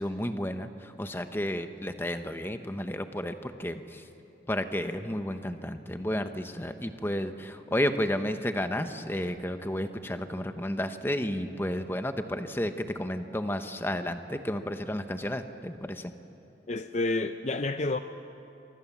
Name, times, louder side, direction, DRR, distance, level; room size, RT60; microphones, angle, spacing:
voice 1, 0.0-4.0 4.5-16.1, left 1 dB, 10° left, 8 dB, 1.0 m, -32 dB
voice 2, 16.7-18.0, left 2 dB, 40° left, 9 dB, 0.6 m, -29 dB
28.5 x 25.0 x 7.3 m, 2.9 s
head